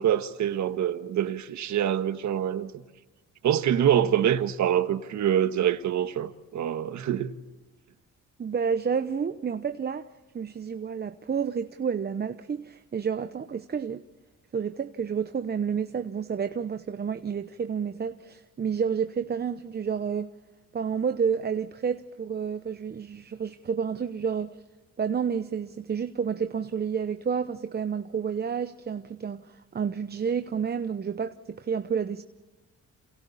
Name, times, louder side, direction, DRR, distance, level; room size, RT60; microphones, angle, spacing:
voice 1, 0.0-2.7 3.4-7.3, right 10 dB, 70° right, 1.5 m, -25 dB
voice 2, 8.4-10.1 10.3-14.0 14.5-20.3 20.7-24.6 25.0-32.2, right 6 dB, 35° right, 0.9 m, -30 dB
28.5 x 28.5 x 4.2 m
cardioid pair, 90°, 30 cm